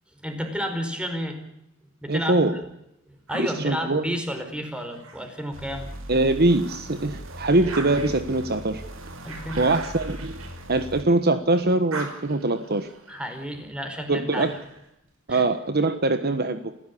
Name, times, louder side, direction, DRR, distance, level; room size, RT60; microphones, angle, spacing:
voice 1, 0.2-1.4 2.0-2.4 3.1-5.9 9.2-9.7 13.1-14.6 15.3-15.4, equal, 5° right, 6 dB, 4.8 m, -31 dB
voice 2, 2.1-2.5 3.3-4.1 6.1-8.8 9.6-10.4 10.7-12.9 14.1-14.5 15.3-16.7, right 2 dB, 50° right, 10 dB, 1.3 m, -23 dB
sound 1, 3.3-6.0 6.5-11.3 11.6-14.9, right 3 dB, 90° right, 5.5 m, -42 dB
sound 2, 5.5-11.0, equal, 65° right, 3.3 m, -39 dB
28.5 x 16.0 x 8.6 m, 0.81 s
head